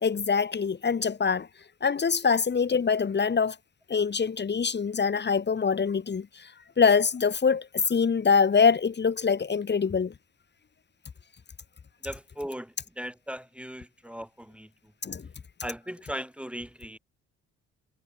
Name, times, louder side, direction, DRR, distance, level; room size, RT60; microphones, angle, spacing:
voice 1, 0.0-1.5 1.8-3.6 3.9-6.5 6.8-10.1 15.0-15.2, left 5 dB, 35° left, 1.9 m, -24 dB
voice 2, 12.0-14.7 15.6-17.0, equal, 5° right, 2.0 m, -38 dB
cardioid pair, 90°, 30 cm